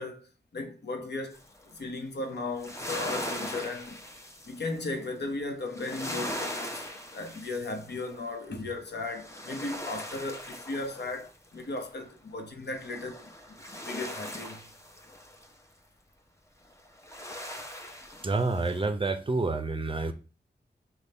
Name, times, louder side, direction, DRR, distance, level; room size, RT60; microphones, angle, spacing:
voice 1, 0.0-1.4 1.6-4.0 4.5-6.8 7.1-14.7, left 2 dB, 75° left, 0.9 m, -36 dB
sound 1, 1.3-1.7 2.3-5.0 5.7-8.5 8.9-11.9 12.7-15.5 16.8-18.8, left 1 dB, 15° left, 0.7 m, -40 dB
voice 2, 18.2-20.1, right 3 dB, 30° right, 0.5 m, -28 dB
5.2 x 2.3 x 4.2 m
wide cardioid pair, 95°, 18 cm